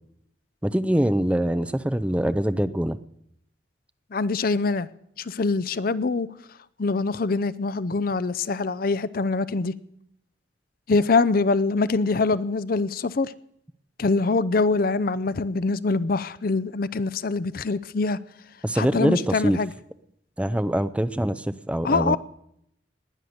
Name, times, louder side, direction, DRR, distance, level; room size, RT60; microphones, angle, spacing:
voice 1, 0.6-3.0 18.6-19.6 20.4-22.2, right 1 dB, 5° right, 0.5 m, -24 dB
voice 2, 4.1-4.9 5.2-6.3 6.8-9.7 10.9-13.3 14.0-18.2 18.8-19.7 21.8-22.2, left 3 dB, 50° left, 0.6 m, -24 dB
20.0 x 6.7 x 9.4 m
head